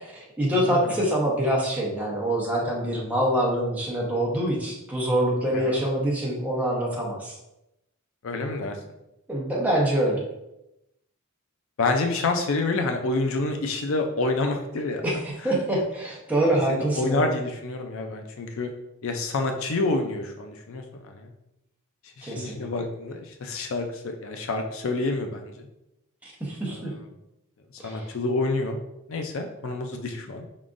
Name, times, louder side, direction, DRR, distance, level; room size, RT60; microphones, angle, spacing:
voice 1, 0.0-7.4 9.3-10.2 15.0-17.3 22.2-22.7 26.4-26.9 27.8-28.1, right 1 dB, 5° right, -4 dB, 0.9 m, -25 dB
voice 2, 0.6-0.9 5.5-5.8 8.2-8.8 11.8-15.0 15.4-15.5 16.7-18.7 19.0-21.3 22.2-25.7 26.7-27.0 27.8-28.8 29.1-30.5, left 2 dB, 60° left, 4 dB, 0.4 m, -28 dB
5.0 x 3.6 x 2.5 m, 0.89 s
head